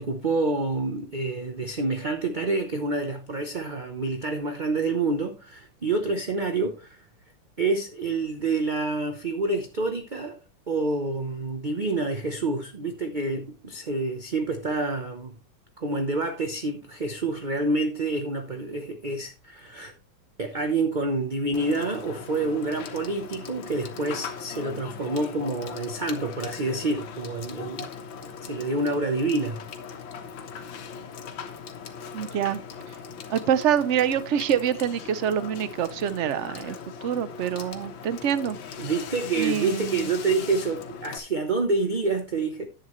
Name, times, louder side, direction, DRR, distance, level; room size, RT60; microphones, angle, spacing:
voice 1, 0.0-7.0 7.6-10.4 10.7-15.3 15.8-19.9 20.4-27.9 28.4-29.6 38.8-42.7, right 3 dB, 35° right, 0.7 m, -27 dB
Water / Water tap faucet / Sink (filling or washing), 21.5-41.2, left 6 dB, 80° left, 1.9 m, -39 dB
voice 2, 32.1-32.6 33.3-36.8 37.0-38.6 39.4-40.0, right 9 dB, 75° right, 0.6 m, -25 dB
10.5 x 8.6 x 3.1 m
omnidirectional pair, 2.1 m